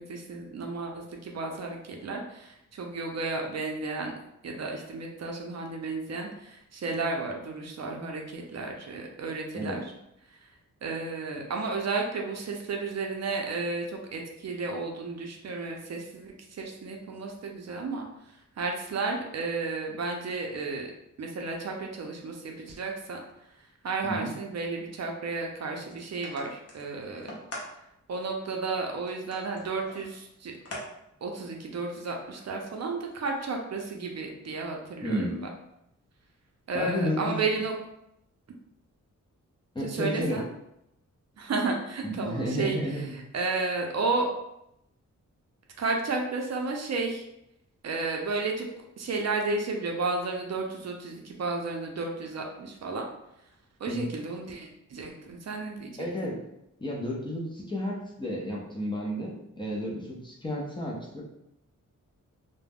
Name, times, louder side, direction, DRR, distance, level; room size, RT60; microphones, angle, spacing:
voice 1, 0.0-4.1 4.4-9.8 10.8-18.1 18.6-20.9 21.2-23.2 23.8-27.4 28.1-30.5 31.2-35.5 36.7-37.7 39.9-40.4 41.4-42.8 43.3-44.3 45.8-47.2 47.8-48.7 49.0-53.0 53.8-56.4, right 3 dB, 55° right, 1 dB, 0.5 m, -32 dB
sound 1, 25.8-27.7 28.3-28.4 29.1-30.9 31.2-31.3 32.3-33.4, left 1 dB, 50° left, 0.7 m, -44 dB
voice 2, 35.0-35.4 36.7-37.4 39.7-40.4 42.0-43.2 53.9-54.0 56.0-56.4 56.8-61.2, equal, 15° left, -3 dB, 0.5 m, -32 dB
2.3 x 2.1 x 3.4 m, 0.82 s
wide cardioid pair, 135°, 31 cm